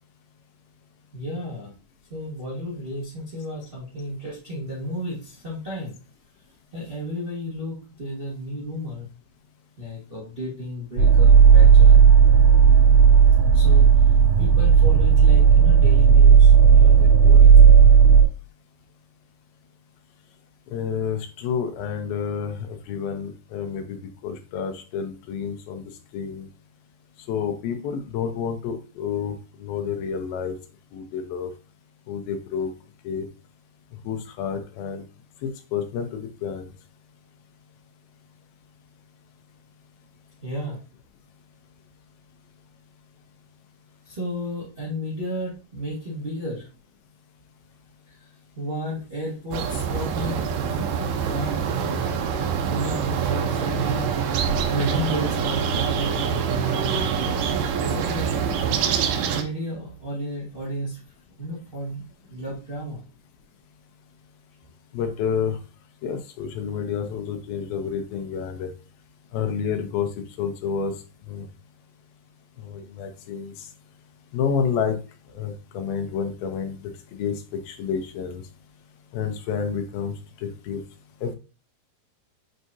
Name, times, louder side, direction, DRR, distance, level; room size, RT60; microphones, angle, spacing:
voice 1, 1.1-1.7 2.1-6.0 6.7-9.1 9.8-12.0 13.5-14.0 14.4-17.6 40.4-40.8 44.0-46.7 48.6-50.9 51.2-52.1 52.7-54.1 54.7-57.3 57.9-58.5 59.3-61.0 61.4-62.0 62.3-63.0, equal, 35° right, -7 dB, 0.8 m, -32 dB
sound 1, 11.0-18.2, right 7 dB, 90° right, 3.6 m, -12 dB
voice 2, 20.7-24.0 24.2-25.8 26.1-26.5 27.3-30.6 30.9-31.5 32.1-32.7 33.0-33.3 34.0-35.0 35.4-36.7 64.9-65.6 66.0-68.7 69.3-70.1 70.4-70.9 71.3-71.5 72.6-73.5 74.3-75.0 75.4-76.8 77.2-77.4 77.7-78.4 79.1-80.1 80.4-80.8 81.2-81.4, left 7 dB, 80° left, 7 dB, 2.7 m, -29 dB
sound 2, 49.5-59.4, right 7 dB, 75° right, 2.3 m, -25 dB
7.7 x 4.7 x 2.7 m, 0.32 s
omnidirectional pair, 4.3 m